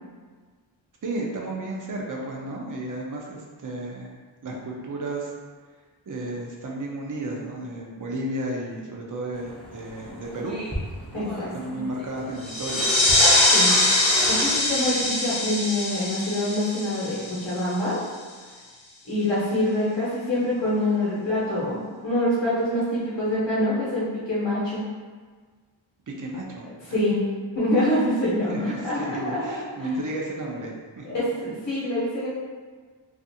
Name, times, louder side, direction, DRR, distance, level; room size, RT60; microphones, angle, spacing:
voice 1, 1.0-4.1 4.4-5.3 6.1-10.6 11.1-11.3 11.5-12.9 26.1-27.0 28.5-31.2, right 1 dB, 45° right, -2 dB, 0.5 m, -33 dB
sound 1, 9.3-15.1, equal, ahead, 0.6 m, -35 dB
voice 2, 11.1-11.8 13.5-18.0 19.0-24.8 26.9-27.3 27.5-29.9 31.0-32.3, left 1 dB, 35° left, -10 dB, 0.9 m, -26 dB
sound 2, 12.4-17.7, left 1 dB, 80° left, 0.7 m, -22 dB
2.5 x 2.4 x 2.7 m, 1.5 s
wide cardioid pair, 70°, 47 cm